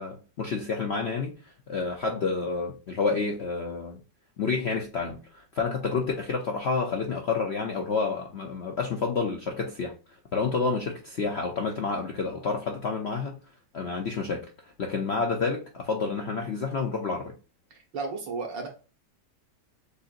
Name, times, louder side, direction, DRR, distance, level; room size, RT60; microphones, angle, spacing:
voice 1, 0.0-4.0 4.4-9.9 10.3-13.4 13.7-14.5 14.8-17.3, left 4 dB, 60° left, 0.6 m, -29 dB
voice 2, 17.9-18.7, right 4 dB, 80° right, 2.0 m, -32 dB
6.7 x 2.6 x 2.5 m
omnidirectional pair, 1.9 m